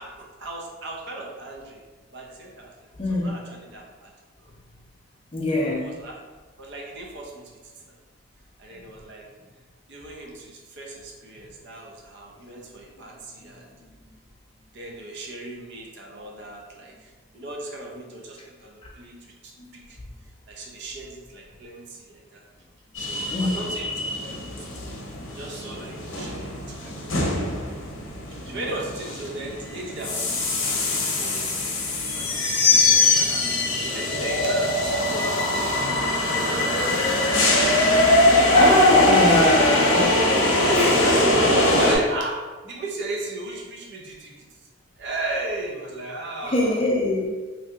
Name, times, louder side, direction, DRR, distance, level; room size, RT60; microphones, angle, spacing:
voice 1, 0.0-1.8 2.1-2.9 3.2-4.1 4.4-4.5 5.5-6.2 6.6-7.9 8.6-9.3 9.9-13.7 14.7-20.0 20.5-22.4 23.0-24.7 25.3-27.3 28.4-31.6 32.1-33.5 33.9-38.0 38.5-39.3 40.2-44.5 45.0-46.8, right 2 dB, 60° right, -1 dB, 0.5 m, -37 dB
voice 2, 3.0-3.4 5.3-5.9 19.6-19.7 23.3-23.6 28.4-28.6 38.5-40.1 40.7-41.2 46.4-47.3, left 2 dB, 25° left, -2 dB, 0.5 m, -22 dB
sound 1, 22.9-42.0, left 2 dB, 70° left, 0.7 m, -22 dB
3.1 x 2.7 x 2.4 m, 1.3 s
head